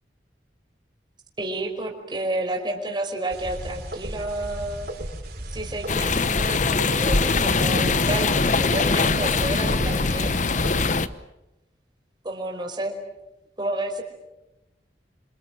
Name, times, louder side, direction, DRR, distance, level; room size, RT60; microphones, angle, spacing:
voice 1, 1.4-4.9 5.5-10.7 12.2-12.9 13.6-14.0, right 1 dB, 25° right, 3 dB, 5.0 m, -30 dB
sound 1, 3.3-11.0, right 1 dB, 60° right, 6.2 m, -35 dB
sound 2, 5.9-11.1, left 4 dB, 45° left, 1.0 m, -22 dB
29.0 x 26.5 x 7.5 m, 0.94 s
head